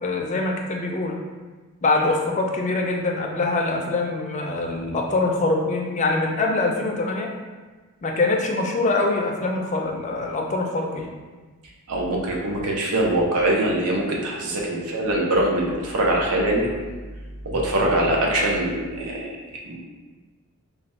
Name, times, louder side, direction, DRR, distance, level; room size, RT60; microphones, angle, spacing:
voice 1, 0.0-1.2 1.8-7.3 8.0-11.1, left 2 dB, 30° left, 1 dB, 0.4 m, -24 dB
voice 2, 11.9-16.7 17.4-19.4 19.6-19.8, right 1 dB, 75° right, -1 dB, 0.6 m, -23 dB
3.3 x 2.3 x 4.0 m, 1.3 s
head